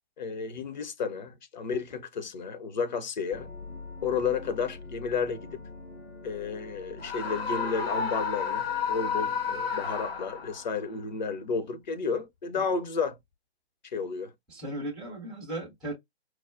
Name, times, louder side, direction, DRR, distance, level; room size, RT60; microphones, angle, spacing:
voice 1, 0.2-3.5 4.0-5.6 6.2-13.2 13.9-14.3, left 5 dB, 45° left, 0.7 m, -32 dB
sound 1, 3.3-10.6, left 3 dB, 85° left, 2.8 m, -46 dB
Screaming, 7.0-10.7, left 6 dB, 65° left, 1.3 m, -31 dB
voice 2, 14.5-15.9, right 1 dB, ahead, 0.4 m, -36 dB
4.5 x 2.0 x 2.4 m
figure-of-eight pair, 125°, 32 cm